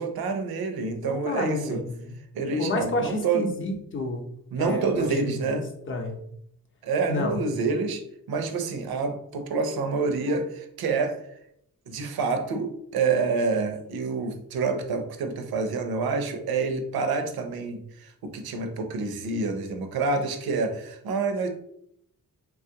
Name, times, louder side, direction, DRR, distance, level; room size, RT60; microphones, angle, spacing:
voice 1, 0.0-1.8 2.3-3.5 4.5-5.7 6.8-11.2 11.9-21.5, right 4 dB, 85° right, 7 dB, 0.6 m, -27 dB
voice 2, 1.0-2.1 2.6-4.2 4.6-5.6 5.9-6.2 7.1-7.4, left 2 dB, 35° left, 4 dB, 0.6 m, -30 dB
3.1 x 2.3 x 2.7 m, 0.73 s
wide cardioid pair, 120°, 36 cm